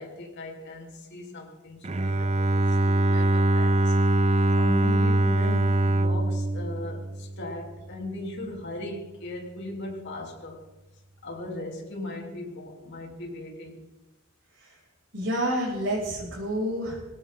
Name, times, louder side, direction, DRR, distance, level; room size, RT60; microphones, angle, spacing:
voice 1, 0.0-4.0 4.2-10.7 11.2-13.9, left 1 dB, 55° left, -1 dB, 3.7 m, -38 dB
Bowed string instrument, 1.8-7.8, right 1 dB, 30° right, 0.6 m, -23 dB
voice 2, 15.1-17.1, equal, 60° right, -5 dB, 7.3 m, -29 dB
21.0 x 17.5 x 3.9 m, 1.0 s
head